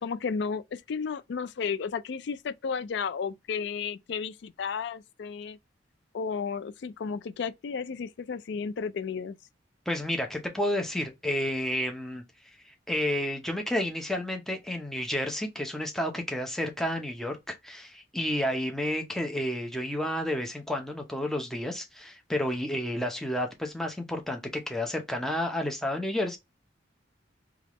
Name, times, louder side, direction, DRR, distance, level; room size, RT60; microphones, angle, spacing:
voice 1, 0.0-5.6 6.1-9.4, left 6 dB, 60° left, 0.3 m, -33 dB
voice 2, 9.9-12.2 12.6-26.4, left 1 dB, ahead, 0.6 m, -31 dB
3.4 x 2.4 x 2.9 m
head